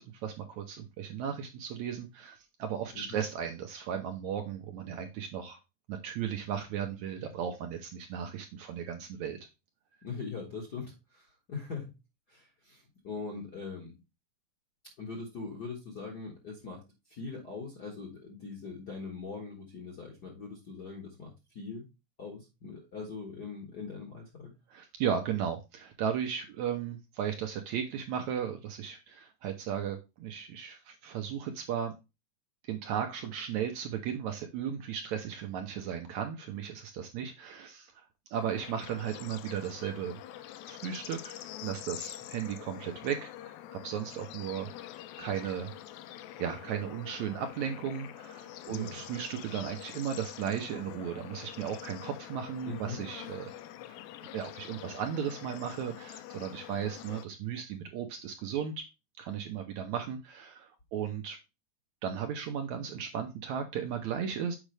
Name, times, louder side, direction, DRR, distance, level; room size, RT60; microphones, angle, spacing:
voice 1, 0.0-5.6 5.9-9.4 24.7-31.9 32.6-38.0 38.3-40.2 40.7-41.3 41.6-43.6 43.8-44.7 45.2-45.7 46.4-53.5 54.3-58.7 59.2-61.4 62.0-64.6, right 8 dB, 70° right, 4 dB, 1.8 m, -35 dB
voice 2, 10.0-11.9 12.3-13.9 15.0-16.8 17.1-21.9 22.2-24.5 48.7-49.0 52.6-53.0, left 4 dB, 45° left, -1 dB, 1.4 m, -41 dB
Bird / Insect / Frog, 38.3-57.2, left 12 dB, 90° left, 1.6 m, -46 dB
7.3 x 5.0 x 3.3 m, 0.25 s
omnidirectional pair, 3.9 m